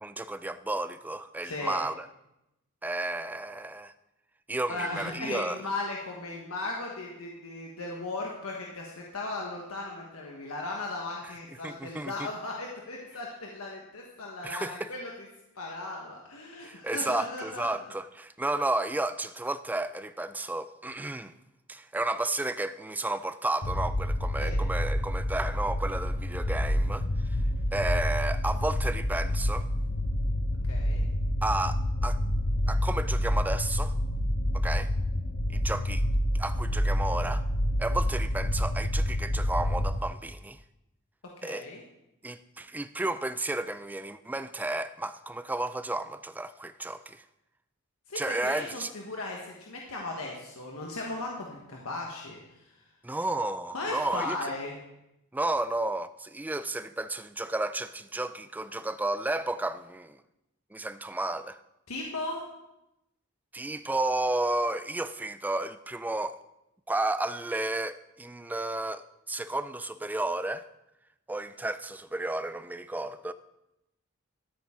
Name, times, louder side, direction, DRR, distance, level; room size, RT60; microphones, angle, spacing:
voice 1, 0.0-2.1 2.8-3.9 4.5-5.6 11.6-12.3 14.4-14.9 16.6-21.3 21.7-27.4 27.7-29.7 31.4-32.2 32.7-34.0 34.5-34.9 35.5-36.0 36.3-37.4 37.8-40.6 41.4-41.7 42.2-47.2 48.1-48.9 53.0-54.4 55.3-60.2 60.7-61.6 63.5-66.4 66.9-70.7 71.3-73.3, right 2 dB, 10° right, 0.3 m, -32 dB
voice 2, 1.4-1.8 4.7-15.3 15.5-17.7 24.4-24.6 30.7-31.0 41.4-41.8 48.1-52.7 53.7-54.8 61.9-62.4, left 2 dB, 90° left, 1.3 m, -37 dB
sound 1, 23.6-40.0, left 1 dB, 60° left, 0.8 m, -28 dB
12.5 x 8.6 x 3.7 m
head